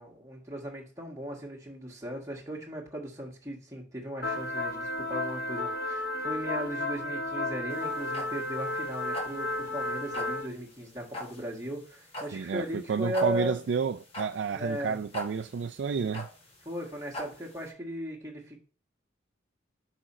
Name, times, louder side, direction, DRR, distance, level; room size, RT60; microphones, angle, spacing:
voice 1, 0.0-13.6 14.5-15.0 16.6-18.6, equal, 15° right, 1.6 m, -37 dB
sound 1, 4.2-10.5, left 2 dB, 50° left, 0.8 m, -33 dB
sound 2, 7.7-17.7, left 1 dB, 30° left, 1.3 m, -42 dB
voice 2, 12.3-16.3, right 6 dB, 70° right, 0.3 m, -30 dB
6.3 x 4.9 x 4.2 m
head